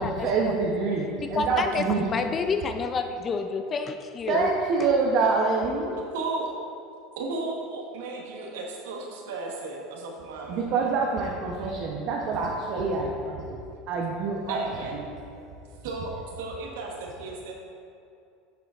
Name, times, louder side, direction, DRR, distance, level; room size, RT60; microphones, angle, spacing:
voice 1, 0.0-2.1 4.3-5.9 10.5-13.6 13.9-14.6 14.9-15.0, right 4 dB, 55° right, -2 dB, 0.8 m, -26 dB
voice 2, 1.3-4.5, left 4 dB, 30° left, 7 dB, 0.4 m, -29 dB
voice 3, 6.1-6.5 7.2-10.7 14.5-15.0 15.8-17.5, right 3 dB, 85° right, 0 dB, 1.2 m, -34 dB
9.1 x 6.8 x 2.5 m, 2.6 s
supercardioid pair, 115°, 0 cm